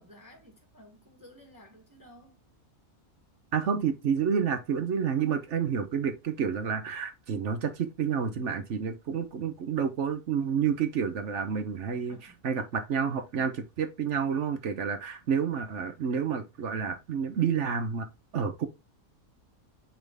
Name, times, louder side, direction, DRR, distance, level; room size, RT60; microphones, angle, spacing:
voice 1, 0.0-2.4 11.9-12.6, equal, 15° right, 1.5 m, -54 dB
voice 2, 3.5-12.2 12.4-18.1 18.3-18.7, right 7 dB, 60° right, 1.1 m, -29 dB
7.3 x 3.8 x 3.4 m
omnidirectional pair, 1.5 m